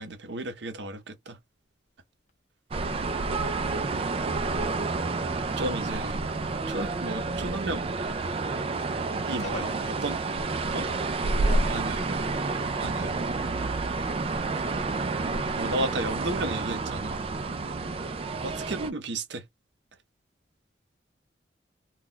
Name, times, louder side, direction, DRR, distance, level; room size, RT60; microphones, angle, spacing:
voice 1, 0.0-1.4 5.6-6.2 6.7-7.8 9.2-9.7 10.0-10.2 10.7-10.9 11.7-12.2 12.8-13.2 15.6-17.2 18.4-19.4, right 2 dB, 70° right, 0.7 m, -33 dB
sound 1, 2.7-18.9, right 3 dB, 30° right, 0.3 m, -29 dB
voice 2, 5.1-5.7 9.2-9.9 11.3-12.1 12.9-13.0 15.1-16.1 17.4-17.6, left 1 dB, 40° left, 0.8 m, -43 dB
2.3 x 2.2 x 3.7 m
head